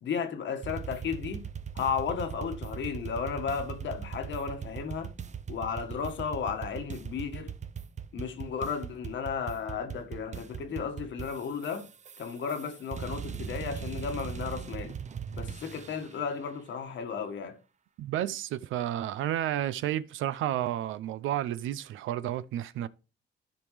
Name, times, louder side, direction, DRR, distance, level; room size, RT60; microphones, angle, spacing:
voice 1, 0.0-1.4 1.7-5.1 5.5-7.5 8.1-11.9 12.2-15.0 15.3-17.6, left 6 dB, 70° left, 1.6 m, -34 dB
sound 1, 0.6-16.2, right 7 dB, 35° right, 0.6 m, -40 dB
voice 2, 18.0-22.9, right 12 dB, 80° right, 0.5 m, -31 dB
13.0 x 5.3 x 3.2 m
cardioid pair, 90°, 20 cm